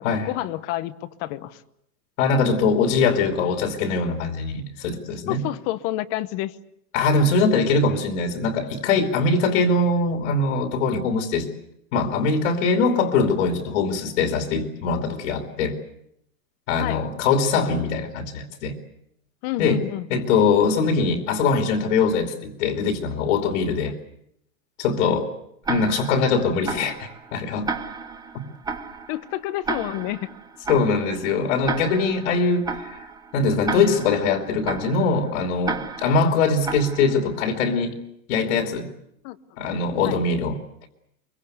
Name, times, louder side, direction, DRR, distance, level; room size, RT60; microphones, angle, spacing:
voice 1, 0.0-1.6 5.3-6.6 9.5-9.7 16.8-17.0 19.4-20.3 23.9-24.0 29.1-30.2 39.2-39.4 40.0-40.2, left 16 dB, 30° left, 15 dB, 0.9 m, -29 dB
voice 2, 2.2-5.4 6.9-11.5 11.9-15.8 16.7-18.7 19.6-19.8 20.1-23.9 24.8-25.3 25.7-27.7 30.7-33.0 33.3-37.9 38.3-38.9 39.6-40.6, left 4 dB, 55° left, 5 dB, 3.0 m, -22 dB
Tick-tock, 25.6-37.5, right 4 dB, 10° right, 1.1 m, -33 dB
23.5 x 23.5 x 8.1 m, 0.77 s
supercardioid pair, 160°, 46 cm